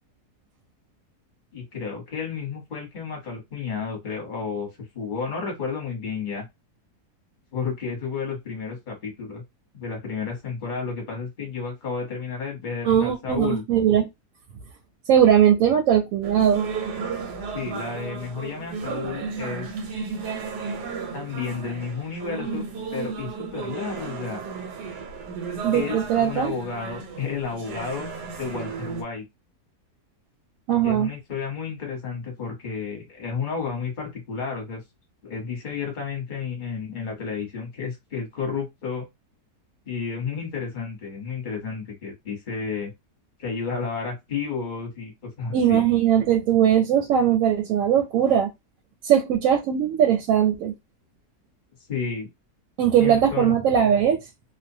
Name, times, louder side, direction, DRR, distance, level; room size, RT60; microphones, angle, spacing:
voice 1, 1.5-4.7 4.9-6.4 7.5-9.4 9.7-13.6 17.5-19.7 21.1-22.6 22.9-24.4 25.7-28.1 28.4-29.2 30.8-34.8 35.2-39.1 39.9-42.9 43.4-45.1 45.4-45.9 51.9-52.3 53.0-53.6, left 5 dB, 35° left, 1.0 m, -31 dB
voice 2, 12.8-14.1 15.1-16.7 25.6-26.5 30.7-31.1 45.5-48.5 49.0-50.7 52.8-54.2, right 9 dB, 70° right, 0.9 m, -20 dB
sound 1, 16.2-29.0, right 5 dB, 85° right, 1.2 m, -34 dB
2.6 x 2.1 x 2.6 m
omnidirectional pair, 1.7 m